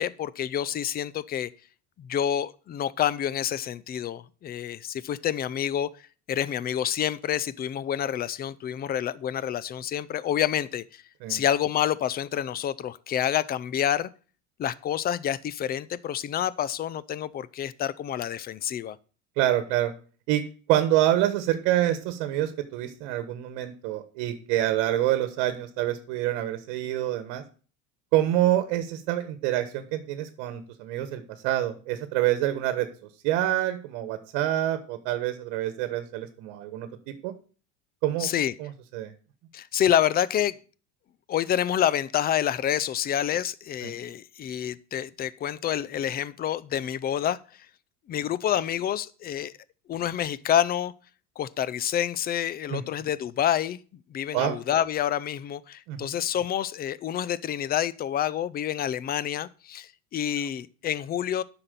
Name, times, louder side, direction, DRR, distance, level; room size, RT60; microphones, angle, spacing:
voice 1, 0.0-1.5 2.0-5.9 6.3-11.0 11.3-14.1 14.6-19.0 38.2-38.5 39.5-40.5 41.3-47.4 48.1-49.5 49.9-50.9 51.4-53.8 54.1-61.4, left 10 dB, 30° left, 0.5 m, -28 dB
voice 2, 19.4-19.9 20.3-20.4 20.7-27.4 28.1-32.9 33.2-37.3 38.0-38.3 38.6-39.1 43.8-43.9 52.7-52.8 54.3-54.6 55.9-56.1, right 13 dB, 70° right, 1.4 m, -26 dB
9.7 x 6.0 x 6.8 m
supercardioid pair, 125°, 34 cm